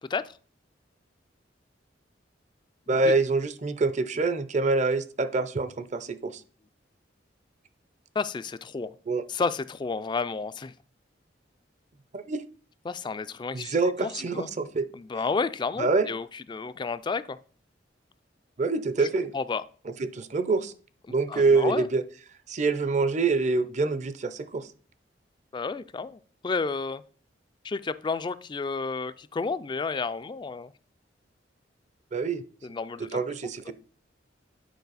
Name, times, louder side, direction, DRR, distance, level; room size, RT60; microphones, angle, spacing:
voice 1, 2.9-6.4 9.1-9.2 12.1-12.4 13.5-14.9 15.8-16.1 18.6-19.3 20.0-20.7 21.1-22.0 22.5-24.7 32.1-32.4 33.1-33.7, right 3 dB, 40° right, 13 dB, 0.5 m, -26 dB
voice 2, 8.2-8.9 9.3-10.7 12.9-14.5 14.9-17.4 19.3-19.6 21.3-21.9 25.5-27.0 27.6-30.7 32.6-33.2 33.7-33.8, left 4 dB, 25° left, 14 dB, 0.3 m, -31 dB
9.2 x 4.7 x 4.0 m, 0.41 s
head